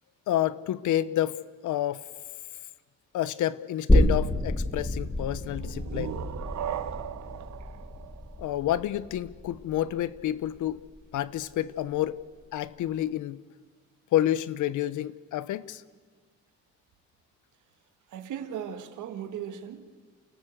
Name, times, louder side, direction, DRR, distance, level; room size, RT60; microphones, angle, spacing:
voice 1, 0.3-1.4 1.6-2.1 3.1-6.2 8.4-10.8 11.1-12.2 12.5-13.4 14.1-15.8, left 12 dB, 80° left, 18 dB, 0.9 m, -29 dB
sound 1, 3.9-11.2 11.5-11.6, left 1 dB, 15° left, 2.5 m, -28 dB
sound 2, 5.6-9.2, right 11 dB, 65° right, 1.0 m, -38 dB
voice 2, 18.1-20.0, right 9 dB, 80° right, 8 dB, 2.0 m, -37 dB
29.0 x 14.5 x 8.0 m, 1.5 s
cardioid pair, 90°, 30 cm